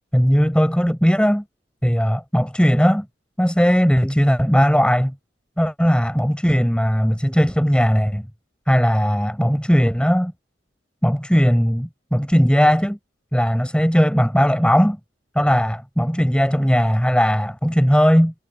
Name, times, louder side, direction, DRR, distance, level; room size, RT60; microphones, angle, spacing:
voice 1, 0.1-1.4 1.8-3.1 3.4-5.1 5.6-8.2 8.7-10.3 11.0-13.0 13.3-15.0 15.3-18.3, equal, 5° left, 4.4 m, -18 dB
head